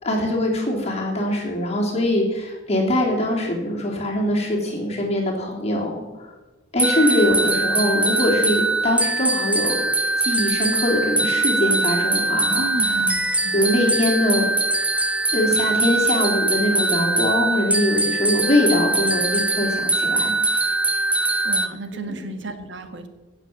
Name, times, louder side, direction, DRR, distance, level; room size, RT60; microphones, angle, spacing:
voice 1, 0.0-5.9 6.7-9.8 10.2-13.0 13.5-14.5 15.3-20.3 21.9-22.3, left 1 dB, 35° left, -2 dB, 3.5 m, -22 dB
sound 1, 6.8-21.7, right 2 dB, 5° right, 0.6 m, -22 dB
voice 2, 12.5-13.9 21.4-23.1, right 2 dB, 65° right, 7 dB, 1.7 m, -33 dB
17.0 x 7.1 x 7.5 m, 1.2 s
head